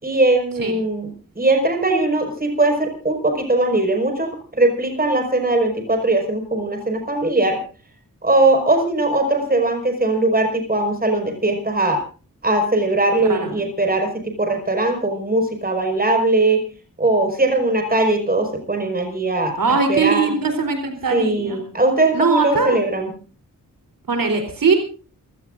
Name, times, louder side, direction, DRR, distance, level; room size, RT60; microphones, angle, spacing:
voice 1, 0.0-7.6 8.2-12.0 12.4-16.6 17.0-20.3 21.1-23.1, right 2 dB, 25° right, 4 dB, 5.5 m, -20 dB
voice 2, 19.6-21.6 22.1-22.8 24.1-24.7, right 4 dB, 85° right, 4 dB, 3.9 m, -20 dB
27.5 x 17.0 x 2.6 m, 0.38 s
wide cardioid pair, 115°, 33 cm